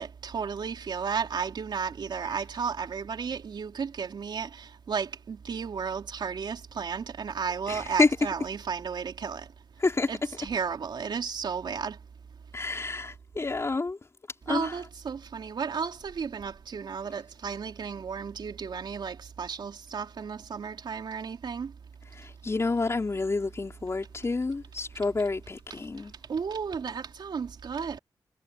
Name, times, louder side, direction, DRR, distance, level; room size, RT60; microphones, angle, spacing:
voice 1, 0.0-9.5 10.1-12.0 14.5-21.7 26.3-28.0, right 6 dB, 70° right, 3.5 m, -33 dB
voice 2, 7.7-8.1 9.8-10.1 12.5-14.0 14.5-14.8 22.1-26.1, left 3 dB, 35° left, 4.7 m, -28 dB
cardioid pair, 85°, 8 cm